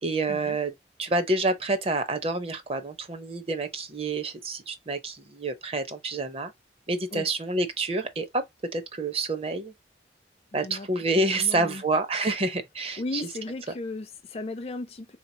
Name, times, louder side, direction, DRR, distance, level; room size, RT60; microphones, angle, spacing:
voice 1, 0.0-0.7 1.0-6.5 6.9-8.4 8.7-9.7 10.5-13.2, right 2 dB, 30° right, 0.6 m, -28 dB
voice 2, 11.4-11.8 13.0-15.2, left 2 dB, 35° left, 0.4 m, -35 dB
3.8 x 2.8 x 2.7 m
head